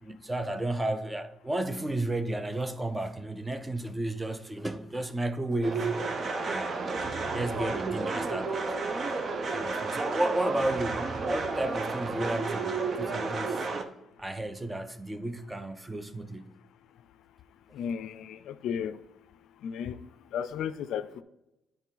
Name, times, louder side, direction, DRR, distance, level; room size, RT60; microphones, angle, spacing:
voice 1, 0.0-6.0 6.4-7.1 7.3-8.7 9.5-13.7 14.2-16.6, right 1 dB, 15° right, 0.6 m, -33 dB
sound 1, 5.6-13.8, right 3 dB, 50° right, 0.8 m, -31 dB
voice 2, 17.7-19.0 19.6-20.0 20.3-21.2, left 8 dB, 80° left, 0.4 m, -34 dB
9.8 x 4.4 x 3.9 m
cardioid pair, 90°, 0 cm